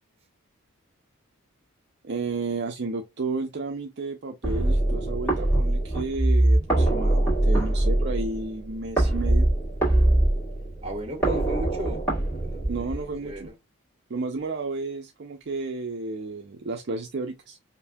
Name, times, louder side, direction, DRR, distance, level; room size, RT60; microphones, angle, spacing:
voice 1, 2.0-9.5 12.7-13.5 14.1-17.6, right 3 dB, 50° right, 0.5 m, -32 dB
sound 1, 4.4-13.4, right 1 dB, 10° left, 1.9 m, -23 dB
voice 2, 10.8-12.0 12.5-13.4, equal, 30° right, 1.3 m, -35 dB
5.2 x 2.6 x 2.2 m
head